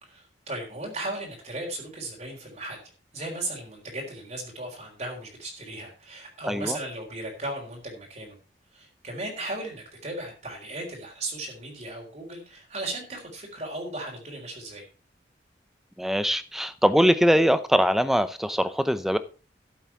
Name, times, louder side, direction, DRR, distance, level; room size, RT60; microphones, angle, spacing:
voice 1, 0.0-2.8 3.1-8.4 8.7-14.8, right 2 dB, 40° right, 3.9 m, -36 dB
voice 2, 6.5-6.8 16.0-19.2, equal, ahead, 0.7 m, -22 dB
12.5 x 8.0 x 4.5 m
head